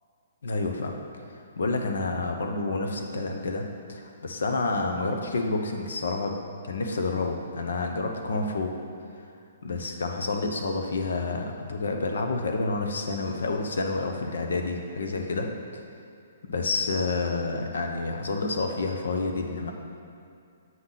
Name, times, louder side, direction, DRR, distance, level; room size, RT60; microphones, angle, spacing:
voice 1, 0.4-0.9 1.6-3.6 3.9-6.3 6.6-8.7 9.6-15.5 16.4-19.7, left 3 dB, 85° left, 3 dB, 0.8 m, -29 dB
7.6 x 3.9 x 5.7 m, 2.5 s
hypercardioid pair, 180°, 0 cm